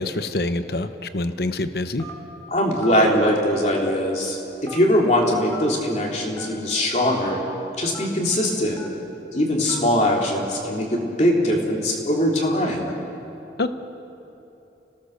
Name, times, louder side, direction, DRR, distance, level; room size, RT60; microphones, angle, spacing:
voice 1, 0.0-2.0 13.6-13.7, left 2 dB, 60° left, 10 dB, 0.9 m, -26 dB
Telephone, 2.0-2.3 2.8-3.0 3.8-4.2 4.7-4.8 5.5-5.7 6.3-6.5 7.2-7.3 7.9-8.1 8.8-9.0 9.7-9.9, left 3 dB, 15° left, 2.1 m, -38 dB
voice 2, 2.5-7.4 7.8-8.8 9.3-12.9, equal, 40° left, -1 dB, 3.5 m, -21 dB
30.0 x 17.5 x 6.8 m, 3.0 s
head